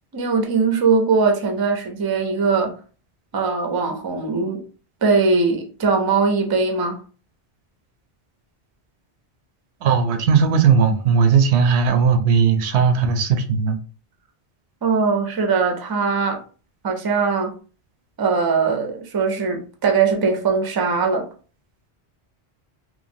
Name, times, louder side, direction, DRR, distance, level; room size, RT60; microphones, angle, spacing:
voice 1, 0.1-2.7 3.3-4.6 5.0-7.0 14.8-16.4 16.8-17.5 18.2-21.3, right 4 dB, 30° right, 0.4 m, -20 dB
voice 2, 9.8-13.8, right 6 dB, 85° right, 0.8 m, -17 dB
3.0 x 2.3 x 2.6 m
omnidirectional pair, 1.1 m